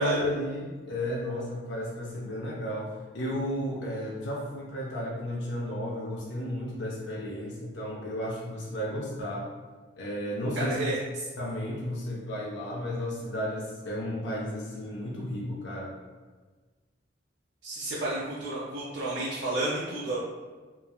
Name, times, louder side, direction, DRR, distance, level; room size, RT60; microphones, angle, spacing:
voice 1, 0.0-9.5 10.0-11.0 11.4-15.9, left 1 dB, 70° left, -4 dB, 0.5 m, -33 dB
voice 2, 10.6-11.0 17.6-20.2, right 2 dB, 70° right, -7 dB, 0.5 m, -30 dB
3.1 x 2.2 x 2.3 m, 1.4 s
head